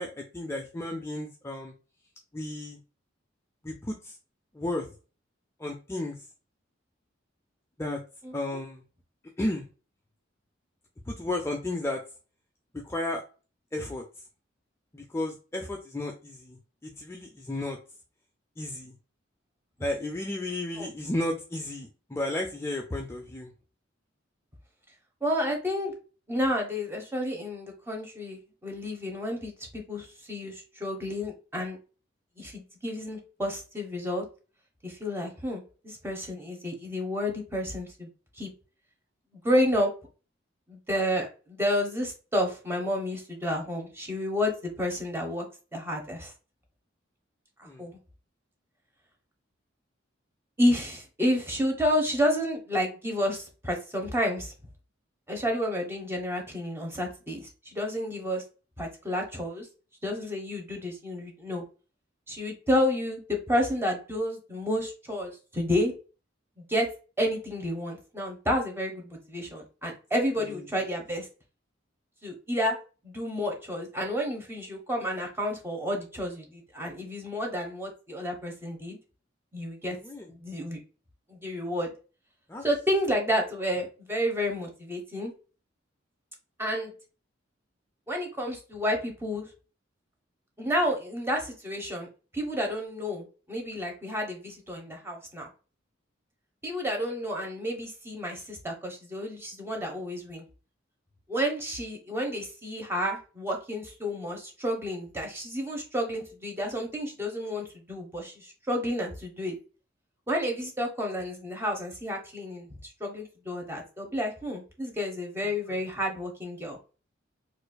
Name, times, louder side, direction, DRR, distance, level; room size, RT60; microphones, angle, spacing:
voice 1, 0.0-1.7 2.3-2.8 3.6-4.2 4.5-4.9 5.6-6.2 7.8-8.0 8.3-8.8 9.4-9.7 11.1-12.0 12.7-13.2 13.7-14.0 14.9-17.8 18.6-18.9 19.8-23.5 47.6-47.9 70.5-70.6 79.9-80.3 82.5-82.6 115.4-115.8, left 1 dB, 15° left, 1 dB, 0.4 m, -33 dB
voice 2, 8.2-8.6 20.8-20.9 25.2-25.9 26.3-31.8 32.4-34.2 34.8-38.1 38.4-38.5 39.4-39.9 40.7-45.4 45.7-46.3 47.6-47.9 50.6-54.5 55.3-58.4 58.8-59.7 60.0-61.6 62.3-65.9 66.6-66.9 67.2-71.3 72.2-72.8 73.0-79.0 79.5-80.0 80.3-80.8 81.3-81.9 82.6-85.3 86.6-86.9 88.1-89.5 90.6-92.1 92.3-95.5 96.6-100.4 101.3-109.5 110.3-112.7 113.0-116.8, equal, 15° right, 1 dB, 1.0 m, -30 dB
4.3 x 2.6 x 2.2 m, 0.34 s
head